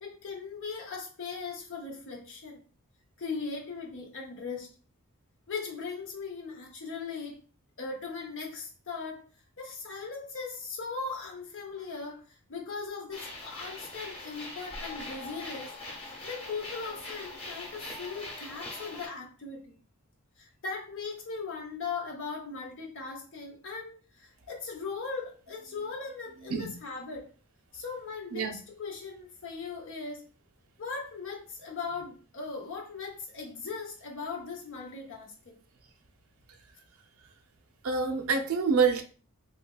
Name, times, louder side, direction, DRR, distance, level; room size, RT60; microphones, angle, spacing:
voice 1, 0.0-2.6 3.2-4.7 5.5-7.4 7.8-9.2 9.6-15.8 16.0-19.8 20.4-27.3 27.7-28.5 28.8-30.3 30.8-35.5, left 4 dB, 60° left, 0 dB, 0.8 m, -39 dB
sound 1, 13.1-19.1, left 2 dB, 30° left, 1.0 m, -42 dB
voice 2, 26.4-26.7 28.3-28.6 37.8-39.0, right 5 dB, 70° right, 5 dB, 0.5 m, -27 dB
3.8 x 3.1 x 2.2 m, 0.38 s
head